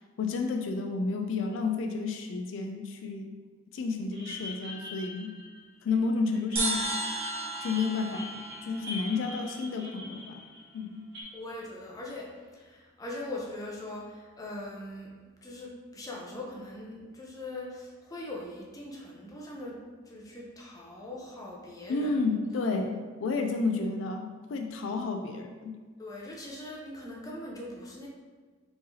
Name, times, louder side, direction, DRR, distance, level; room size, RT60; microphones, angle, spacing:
voice 1, 0.2-3.3 3.7-5.3 5.8-6.9 7.6-10.4 10.7-11.0 21.9-25.8, left 4 dB, 70° left, 4 dB, 0.3 m, -31 dB
sound 1, 4.1-6.0 6.3-11.2, left 1 dB, 55° right, 1.0 m, -43 dB
sound 2, 6.6-10.1, right 2 dB, 30° right, 1.0 m, -35 dB
voice 2, 11.3-15.1 15.4-19.8 20.0-22.2 26.0-28.1, left 1 dB, 20° left, -3 dB, 0.6 m, -41 dB
4.5 x 3.2 x 2.7 m, 1.4 s
head